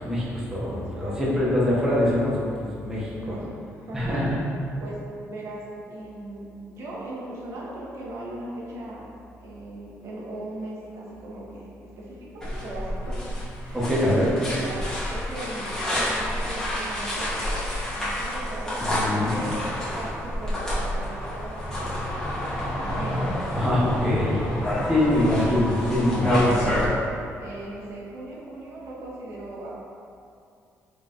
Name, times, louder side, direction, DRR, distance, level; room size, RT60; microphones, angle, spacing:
voice 1, 0.0-3.5 3.9-4.4 13.7-14.3 18.8-19.4 23.5-24.6 24.9-26.5, left 1 dB, 10° right, -8 dB, 1.0 m, -24 dB
voice 2, 0.7-1.2 3.2-4.2 4.8-9.1 9.4-13.3 13.6-13.8 14.2-17.6 17.9-18.8 19.3-23.2 23.6-23.9 24.5-25.8 26.3-29.8, right 1 dB, 65° right, -5 dB, 1.1 m, -38 dB
sound 1, 12.4-26.9, left 1 dB, 10° left, 1.3 m, -28 dB
3.8 x 3.1 x 3.8 m, 2.4 s
cardioid pair, 105°, 5 cm